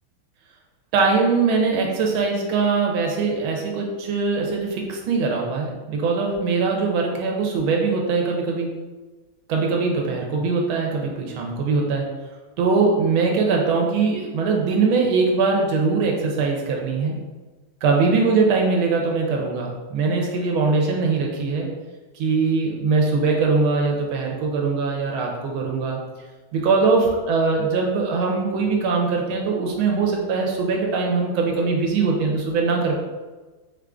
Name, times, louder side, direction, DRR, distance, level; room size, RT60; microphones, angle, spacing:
voice 1, 0.9-8.8 9.5-12.1 12.6-17.2 17.8-21.7 22.1-26.0 26.5-32.9, right 4 dB, 85° right, 0 dB, 1.6 m, -21 dB
5.1 x 2.5 x 3.5 m, 1.3 s
omnidirectional pair, 2.2 m